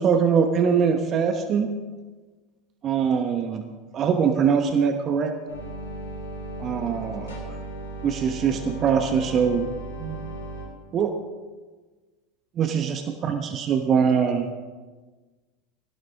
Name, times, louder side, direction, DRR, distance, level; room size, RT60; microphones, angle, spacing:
voice 1, 0.0-1.7 2.8-3.7 3.9-5.3 6.6-7.4 8.0-9.7 10.0-10.2 10.9-11.1 12.6-14.5, right 6 dB, 35° right, 6 dB, 1.2 m, -22 dB
sound 1, 5.5-10.7, right 1 dB, 70° left, 4.1 m, -36 dB
16.5 x 16.5 x 3.7 m, 1.3 s
figure-of-eight pair, 80°, 0 cm